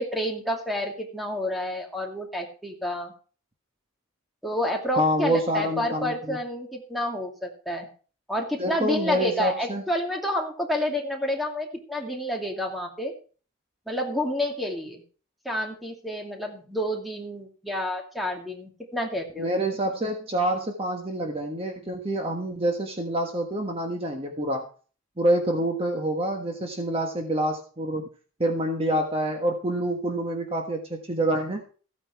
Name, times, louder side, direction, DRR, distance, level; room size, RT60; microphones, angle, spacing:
voice 1, 0.0-3.1 4.4-7.9 8.3-13.1 13.9-15.0 15.4-19.5, left 1 dB, ahead, 1 dB, 2.4 m, -29 dB
voice 2, 5.0-6.4 8.6-9.8 19.4-24.7 25.2-28.1 28.4-31.6, right 1 dB, 25° right, 3 dB, 1.4 m, -27 dB
15.0 x 9.2 x 4.7 m, 0.40 s
head